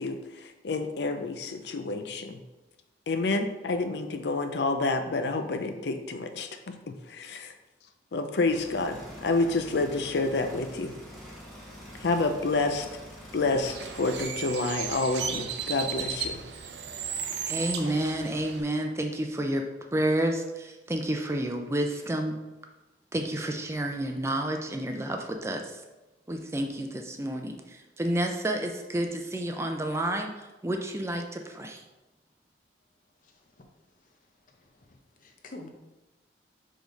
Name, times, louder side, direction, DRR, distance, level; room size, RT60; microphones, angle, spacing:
voice 1, 0.0-2.4 3.1-6.5 6.9-7.5 8.1-10.9 12.0-12.9 13.3-16.4, left 3 dB, 70° left, 7 dB, 0.5 m, -28 dB
sound 1, 8.5-14.2, equal, ahead, 1.4 m, -45 dB
Bird, 13.6-18.6, right 7 dB, 75° right, 0.6 m, -35 dB
voice 2, 17.5-19.6 19.9-22.4 23.1-25.8 26.3-27.5 28.0-30.3 30.6-31.8, right 1 dB, 15° right, 3 dB, 0.5 m, -30 dB
voice 3, 33.2-33.6 34.0-34.2 34.5-35.7, left 2 dB, 45° left, 3 dB, 0.8 m, -49 dB
5.0 x 3.9 x 5.2 m, 1.1 s
head